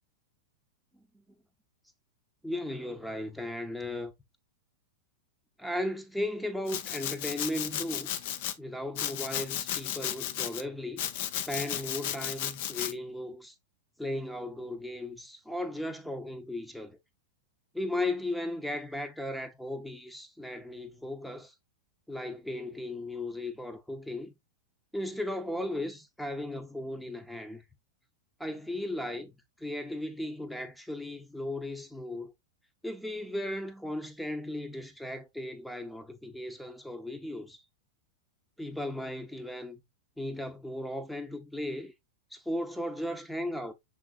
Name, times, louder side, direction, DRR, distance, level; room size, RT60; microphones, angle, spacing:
voice 1, 2.4-4.1 5.6-8.1 8.6-11.0 11.5-13.5 14.0-17.0 17.7-21.5 22.1-24.3 24.9-27.6 28.4-32.3 32.8-37.6 38.6-39.8 40.2-41.9 42.3-43.7, left 1 dB, ahead, 0.7 m, -36 dB
Domestic sounds home sounds, 6.7-8.6 9.0-10.6 11.0-12.9, left 11 dB, 60° left, 0.5 m, -34 dB
5.8 x 3.8 x 2.4 m
hypercardioid pair, 110°, 0 cm